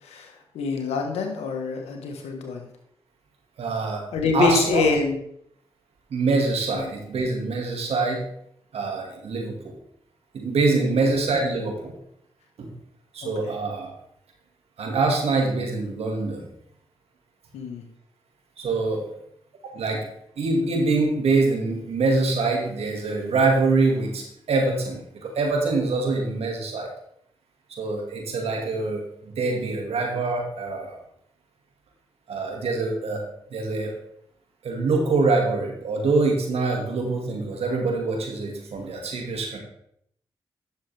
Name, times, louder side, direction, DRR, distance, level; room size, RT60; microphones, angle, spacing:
voice 1, 0.5-2.6 4.1-5.2 6.7-6.8 10.7-10.9 13.2-13.5 17.5-17.8, left 4 dB, 85° left, 3 dB, 1.5 m, -25 dB
voice 2, 3.6-4.0 4.3-4.9 6.1-8.2 8.7-9.8 10.3-11.9 12.6-12.7 13.1-13.9 14.8-16.5 18.6-19.2 19.7-20.1 20.4-26.9 27.8-31.0 32.3-33.2 33.5-34.0 34.6-39.6, right 3 dB, 75° right, 1 dB, 2.1 m, -24 dB
10.0 x 6.9 x 3.5 m, 0.71 s
supercardioid pair, 40°, 10 cm